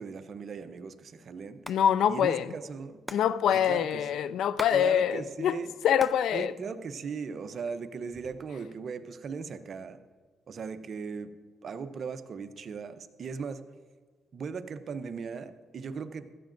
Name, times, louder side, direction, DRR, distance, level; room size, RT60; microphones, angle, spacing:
voice 1, 0.0-1.6 2.1-3.0 3.5-4.3 4.7-5.7 6.3-10.0 10.5-11.3 11.6-13.6 14.3-16.3, right 5 dB, 50° right, 0.7 m, -38 dB
Hands, 1.4-1.8 2.1-2.2 2.4-4.8 5.1-6.3 6.6-7.4 8.0-8.6, equal, 5° left, 0.6 m, -42 dB
voice 2, 1.7-2.5 3.1-5.6 5.8-6.5, left 9 dB, 75° left, 0.4 m, -25 dB
16.5 x 13.0 x 2.6 m
cardioid pair, 90°, 0 cm